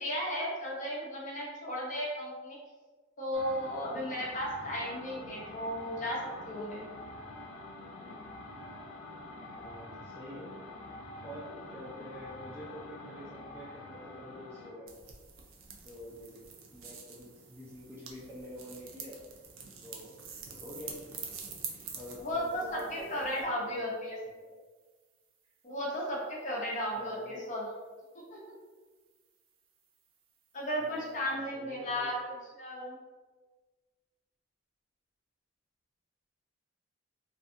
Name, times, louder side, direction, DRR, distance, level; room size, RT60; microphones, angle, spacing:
voice 1, 0.0-2.6 3.2-6.8 22.2-24.2 25.6-27.7 28.3-28.4 30.5-32.2 32.6-33.0, equal, 35° left, -4 dB, 0.6 m, -35 dB
sound 1, 3.3-14.8, left 2 dB, 90° left, 0.4 m, -46 dB
voice 2, 9.6-10.5 11.2-15.2 15.8-16.4 16.7-19.2 19.8-23.1 23.3-24.0 24.2-24.5 26.9-27.4 30.8-32.1, equal, 10° right, -6 dB, 0.3 m, -47 dB
sound 2, 14.9-23.5, right 6 dB, 80° right, 0.4 m, -46 dB
2.4 x 2.3 x 2.6 m, 1.4 s
head